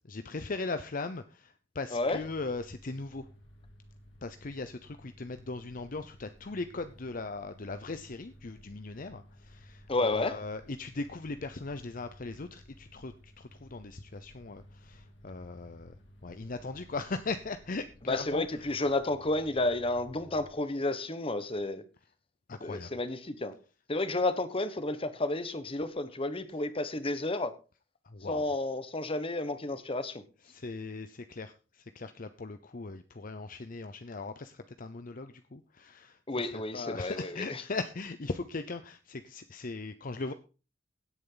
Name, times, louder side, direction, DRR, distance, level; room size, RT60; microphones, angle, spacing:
voice 1, 0.1-3.3 4.2-18.8 22.5-22.9 28.0-28.4 30.4-40.3, left 3 dB, 45° left, 0.7 m, -39 dB
sound 1, 1.9-20.5, equal, 70° left, 2.7 m, -56 dB
voice 2, 1.9-2.2 9.9-10.4 18.1-21.8 22.6-23.5 23.9-27.5 28.3-30.2 36.3-37.6, left 2 dB, 30° left, 1.3 m, -31 dB
16.5 x 8.9 x 4.0 m
head